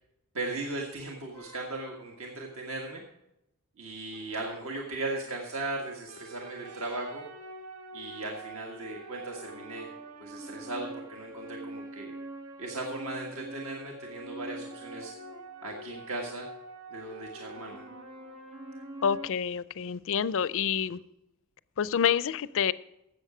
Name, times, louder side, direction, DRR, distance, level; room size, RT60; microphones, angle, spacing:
voice 1, 0.3-3.0 3.8-7.2 7.9-9.9 10.2-12.1 12.6-15.1 15.6-16.4 16.9-17.8, right 2 dB, 65° right, 0 dB, 1.7 m, -37 dB
sound 1, 1.3-2.2 4.1-4.2 4.4-4.5 4.8-4.9 5.1-5.2 6.1-19.3, right 1 dB, 85° right, 1.3 m, -44 dB
voice 2, 19.0-21.0 21.8-22.7, left 7 dB, 60° left, 18 dB, 0.4 m, -27 dB
13.0 x 8.2 x 4.9 m, 0.86 s
head